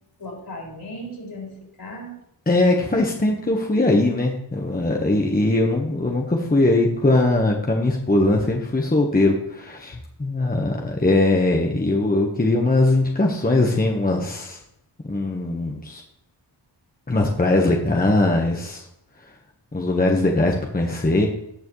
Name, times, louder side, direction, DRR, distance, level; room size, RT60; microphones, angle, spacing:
voice 1, 0.2-2.2 9.9-10.0, equal, 55° left, -2 dB, 4.2 m, -36 dB
voice 2, 2.5-14.6 15.0-16.0 17.1-18.8 19.7-21.3, left 2 dB, 20° left, 1 dB, 1.2 m, -20 dB
18.0 x 6.2 x 3.2 m, 0.79 s
wide cardioid pair, 90°, 45 cm